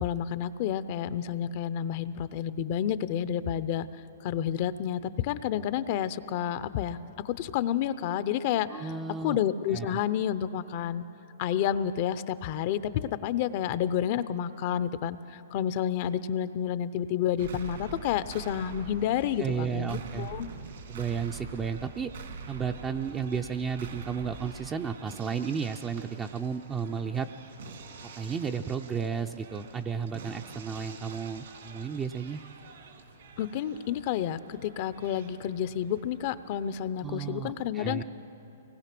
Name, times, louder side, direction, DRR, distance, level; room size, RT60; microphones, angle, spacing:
voice 1, 0.0-3.9 4.2-7.0 7.2-8.9 9.2-11.0 11.4-20.5 33.4-38.0, left 10 dB, 45° left, 14 dB, 0.6 m, -30 dB
voice 2, 8.7-9.4 9.7-10.0 19.4-20.3 20.9-22.1 22.5-27.3 28.2-32.4 37.0-38.0, right 6 dB, 15° right, 5 dB, 0.5 m, -33 dB
sound 1, 17.4-37.3, right 5 dB, 70° right, 2.5 m, -46 dB
24.0 x 19.5 x 6.0 m, 3.0 s
hypercardioid pair, 145°, 0 cm